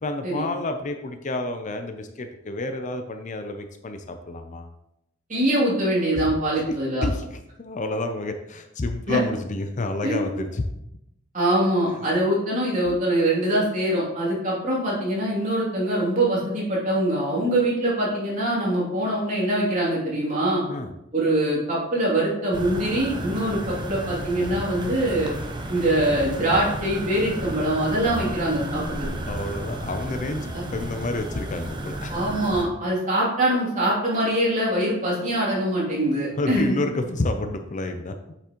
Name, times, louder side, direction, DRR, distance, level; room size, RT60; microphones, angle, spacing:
voice 1, 0.0-4.7 6.1-6.3 6.7-6.8 7.0-10.6 20.7-20.9 29.3-32.2 36.4-38.1, left 2 dB, 40° left, 7 dB, 0.6 m, -29 dB
voice 2, 5.3-7.1 9.1-9.2 10.0-10.2 11.3-20.6 21.1-25.3 25.7-29.1 30.5-30.7 32.1-36.7, right 1 dB, 40° right, -5 dB, 2.8 m, -23 dB
sound 1, 22.5-32.6, right 1 dB, 25° right, 0.9 m, -33 dB
8.5 x 5.9 x 3.0 m, 0.83 s
head